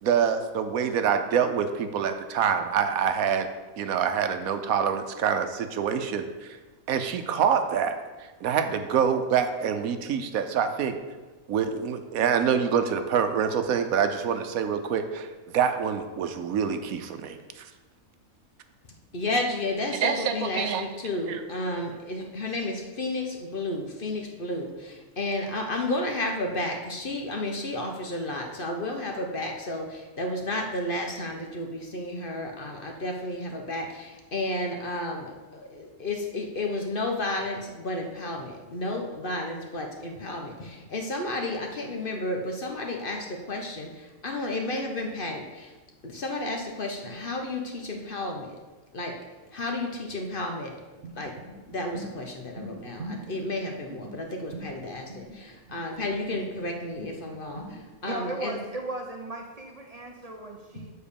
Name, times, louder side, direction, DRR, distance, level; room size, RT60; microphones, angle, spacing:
voice 1, 0.0-3.5 3.8-6.6 6.9-11.0 11.5-17.7 19.9-20.8 21.3-21.4, right 7 dB, 80° right, 8 dB, 1.1 m, -26 dB
voice 2, 19.1-45.7 46.0-48.6 48.9-49.2 49.5-50.8 51.2-51.4 51.7-58.6 60.7-60.8, left 2 dB, 45° left, 2 dB, 1.0 m, -32 dB
sound 1, 51.0-57.8, right 1 dB, 60° right, 1.7 m, -42 dB
voice 3, 58.0-60.9, right 2 dB, 35° right, 2 dB, 0.7 m, -36 dB
7.4 x 4.5 x 6.9 m, 1.2 s
omnidirectional pair, 1.5 m